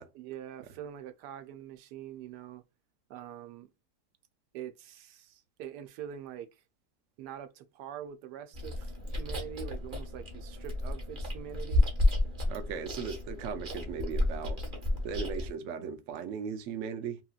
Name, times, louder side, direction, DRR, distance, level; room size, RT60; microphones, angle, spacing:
voice 1, 0.1-2.6 3.1-3.7 4.5-6.6 7.2-11.8, right 9 dB, 85° right, 1.2 m, -44 dB
Chewing mastication, 8.5-15.5, left 2 dB, 35° right, 1.1 m, -31 dB
voice 2, 12.5-14.6 15.0-17.2, right 6 dB, 65° right, 0.8 m, -37 dB
3.0 x 2.8 x 2.3 m
omnidirectional pair, 1.8 m